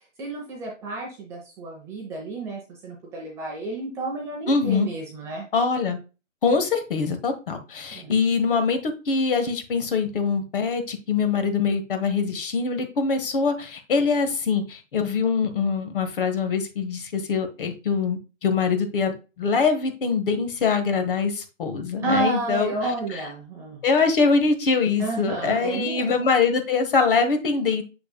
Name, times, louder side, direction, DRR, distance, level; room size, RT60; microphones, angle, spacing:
voice 1, 0.2-5.5 7.9-8.1 22.0-23.8 25.0-26.3, right 2 dB, 10° right, -2 dB, 0.7 m, -31 dB
voice 2, 4.5-4.9 5.5-6.0 6.4-22.7 23.8-27.8, left 5 dB, 45° left, 9 dB, 1.3 m, -23 dB
7.0 x 6.5 x 2.2 m, 0.31 s
figure-of-eight pair, 145°, 38 cm